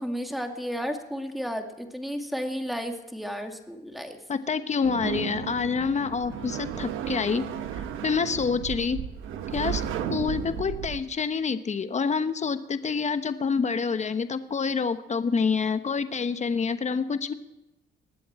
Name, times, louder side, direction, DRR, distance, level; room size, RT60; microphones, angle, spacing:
voice 1, 0.0-4.2, equal, ahead, 4 dB, 2.2 m, -33 dB
voice 2, 4.3-7.4 7.7-9.0 9.5-17.3, left 5 dB, 35° left, 10 dB, 1.1 m, -27 dB
sound 1, 4.8-11.0, right 8 dB, 90° right, 1.2 m, -34 dB
20.5 x 7.8 x 8.9 m, 0.96 s
cardioid pair, 90°, 20 cm